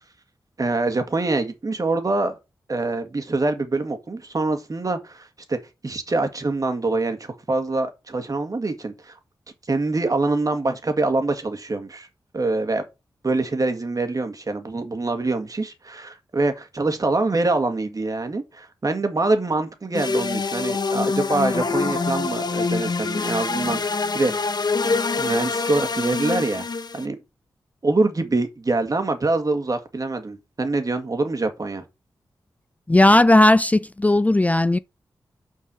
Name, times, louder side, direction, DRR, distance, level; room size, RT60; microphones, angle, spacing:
voice 1, 0.6-2.4 2.7-5.6 5.8-9.2 9.7-12.1 12.3-12.8 13.2-24.5 24.8-26.7 26.9-27.2 27.8-31.8, right 2 dB, 45° right, 1.9 m, -25 dB
sound 1, 19.9-27.1, left 4 dB, 55° left, 0.9 m, -25 dB
voice 2, 32.9-34.8, left 1 dB, 15° left, 0.4 m, -16 dB
5.9 x 4.6 x 6.2 m
cardioid pair, 45°, 8 cm